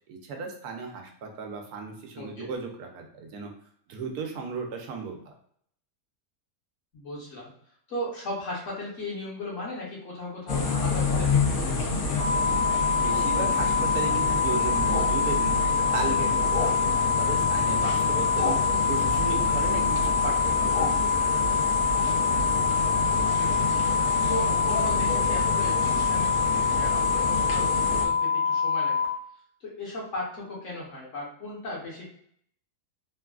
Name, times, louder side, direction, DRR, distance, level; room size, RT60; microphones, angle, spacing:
voice 1, 0.1-3.5 3.9-5.3 13.0-15.5 15.9-18.6 18.9-20.5 20.8-21.6, right 4 dB, 90° right, 3 dB, 1.1 m, -35 dB
voice 2, 2.2-2.5 6.9-7.5 7.9-12.4 23.1-23.8 24.3-29.1 29.6-32.1, left 1 dB, 60° left, -5 dB, 1.3 m, -37 dB
sound 1, 10.5-28.1, left 3 dB, 80° left, 1.1 m, -29 dB
sound 2, 12.2-29.0, left 5 dB, 25° left, 0.5 m, -25 dB
3.2 x 2.3 x 2.3 m, 0.66 s
omnidirectional pair, 1.6 m